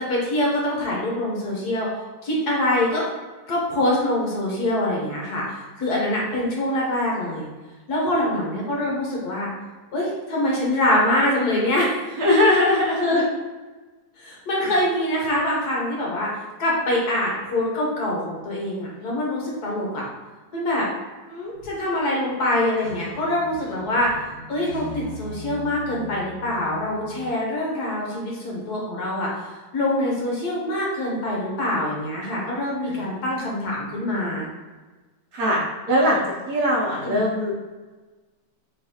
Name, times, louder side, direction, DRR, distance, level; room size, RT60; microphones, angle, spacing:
voice 1, 0.0-1.9 2.2-3.1 3.5-7.5 7.9-9.5 9.9-11.9 13.0-13.2 14.2-16.3 16.6-20.1 20.5-20.9 21.3-24.1 24.5-29.3 29.7-34.5 37.1-37.2, left 1 dB, 65° left, -3 dB, 1.5 m, -24 dB
voice 2, 12.2-13.2 32.8-33.6 35.3-35.6 35.9-37.6, left 1 dB, 65° right, -3 dB, 1.2 m, -21 dB
sound 1, 21.5-21.9 22.3-22.4 22.8-27.3, left 1 dB, 90° right, 1.5 m, -39 dB
3.9 x 3.1 x 2.8 m, 1.3 s
omnidirectional pair, 1.9 m